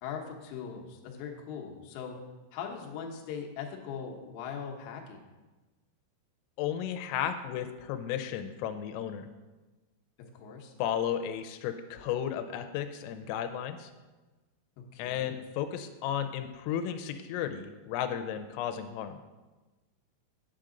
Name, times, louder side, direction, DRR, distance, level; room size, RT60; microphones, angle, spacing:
voice 1, 0.0-2.2 2.5-5.2 10.3-10.7 14.9-15.3, left 7 dB, 75° left, 0 dB, 3.0 m, -40 dB
voice 2, 6.6-9.3 10.8-13.9 15.0-19.2, left 9 dB, 90° left, 8 dB, 3.2 m, -34 dB
8.9 x 8.7 x 3.8 m, 1.2 s
omnidirectional pair, 5.8 m